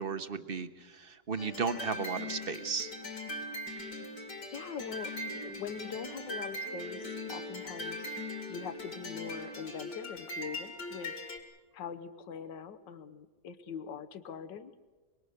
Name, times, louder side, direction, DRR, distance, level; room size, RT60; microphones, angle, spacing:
voice 1, 0.0-2.9, right 5 dB, 40° right, 11 dB, 0.9 m, -35 dB
sound 1, 1.4-11.4, left 1 dB, 70° left, 3.0 m, -41 dB
voice 2, 4.5-14.8, left 6 dB, 85° left, 10 dB, 1.7 m, -43 dB
sound 2, 6.6-10.4, equal, 65° right, 1.9 m, -51 dB
25.5 x 23.0 x 6.6 m, 1.3 s
omnidirectional pair, 1.9 m